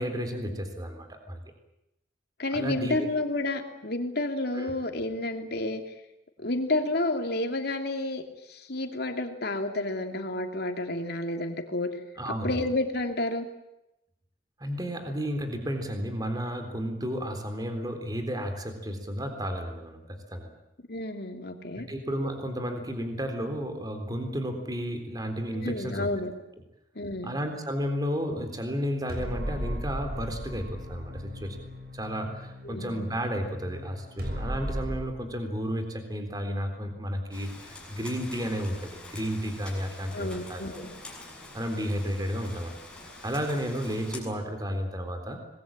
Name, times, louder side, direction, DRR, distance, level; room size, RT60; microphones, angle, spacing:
voice 1, 0.0-1.4 2.5-3.1 4.5-4.7 12.2-12.6 14.6-20.5 21.8-26.1 27.2-31.6 31.9-40.9 41.5-42.7 43.2-45.4, equal, 20° right, 6 dB, 3.8 m, -32 dB
voice 2, 2.4-5.8 6.4-8.2 8.5-11.9 12.4-13.5 20.9-21.9 25.5-26.3 26.9-27.4 32.6-33.1 40.1-40.9, left 2 dB, 60° left, 5 dB, 2.9 m, -30 dB
sound 1, 29.1-35.0, equal, 55° right, 6.5 m, -36 dB
Rain, 37.3-44.2, left 2 dB, 5° left, 7.4 m, -45 dB
25.0 x 21.0 x 8.8 m, 0.89 s
head